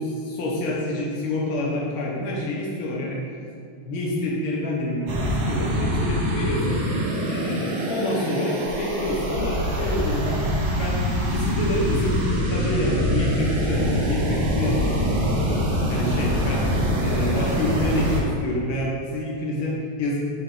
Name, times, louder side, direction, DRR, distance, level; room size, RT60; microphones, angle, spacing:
voice 1, 0.0-3.2 3.8-6.8 7.2-10.4 10.8-15.6 15.9-16.6 16.9-20.2, left 1 dB, 85° left, -4 dB, 1.1 m, -27 dB
sound 1, 5.1-18.2, equal, 60° right, 1.3 m, -24 dB
6.6 x 6.5 x 3.8 m, 2.3 s
omnidirectional pair, 4.1 m